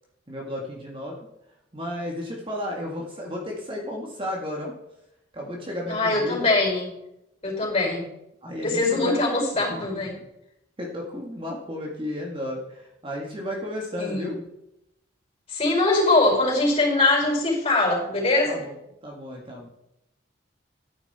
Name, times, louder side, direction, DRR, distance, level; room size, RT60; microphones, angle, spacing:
voice 1, 0.3-1.2 1.7-4.7 5.3-6.5 8.4-9.2 9.7-10.1 10.8-14.4 18.5-18.8 19.0-19.7, left 1 dB, 25° right, -1 dB, 2.0 m, -33 dB
voice 2, 5.9-6.9 7.4-8.1 8.6-10.1 14.0-14.4 15.5-18.6, left 2 dB, 30° left, -1 dB, 4.9 m, -22 dB
12.5 x 10.5 x 4.3 m, 0.83 s
head